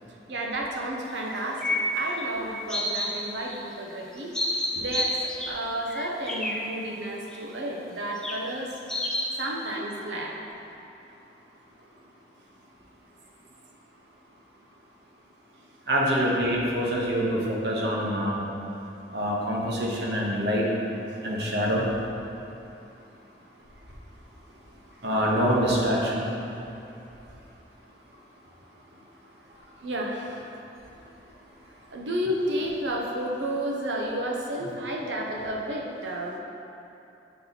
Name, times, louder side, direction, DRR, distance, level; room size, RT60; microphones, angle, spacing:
voice 1, 0.3-4.3 4.7-5.2 5.5-8.8 9.4-10.4 29.8-30.4 31.9-36.4, right 1 dB, 85° right, -1 dB, 0.9 m, -31 dB
sound 1, 1.3-2.2 2.7-3.1 3.5-3.6 4.2-5.6 5.9-6.6 7.3-7.4 8.2-8.3 8.9-9.3, left 1 dB, 5° left, 0.5 m, -29 dB
voice 2, 15.9-18.5 19.1-20.6 21.2-21.9 25.0-26.2, equal, 70° right, -4 dB, 1.1 m, -25 dB
7.5 x 4.3 x 4.0 m, 2.8 s
head